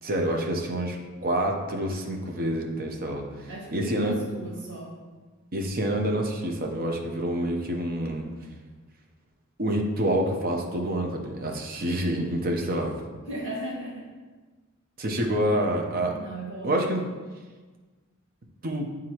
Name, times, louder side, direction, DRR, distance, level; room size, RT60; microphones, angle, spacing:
voice 1, 0.0-4.2 5.5-8.3 9.6-12.9 15.0-16.1 16.6-17.0 18.6-18.9, right 1 dB, 45° right, 1 dB, 0.8 m, -27 dB
voice 2, 3.5-5.0 13.3-14.1 16.1-16.8, right 1 dB, 60° right, -8 dB, 1.8 m, -35 dB
9.5 x 3.7 x 3.0 m, 1.3 s
head